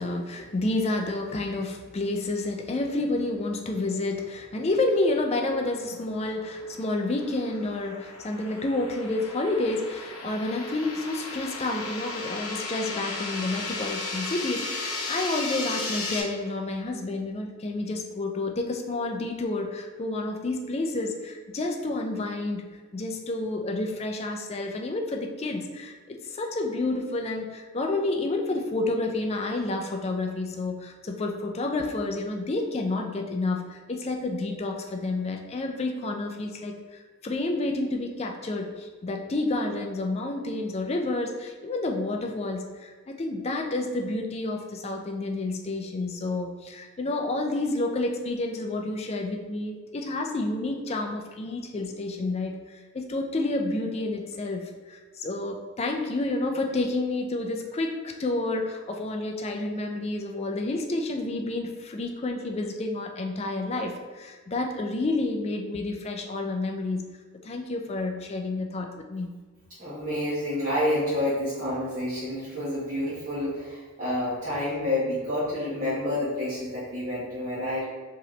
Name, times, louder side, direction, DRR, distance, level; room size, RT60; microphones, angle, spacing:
voice 1, 0.0-22.6 22.9-67.0 67.4-69.3, left 2 dB, 30° left, 3 dB, 0.4 m, -30 dB
sound 1, 5.8-16.2, left 3 dB, 90° left, 0.8 m, -35 dB
voice 2, 69.8-77.8, left 1 dB, 35° right, -13 dB, 1.3 m, -29 dB
4.8 x 3.0 x 3.2 m, 1.4 s
head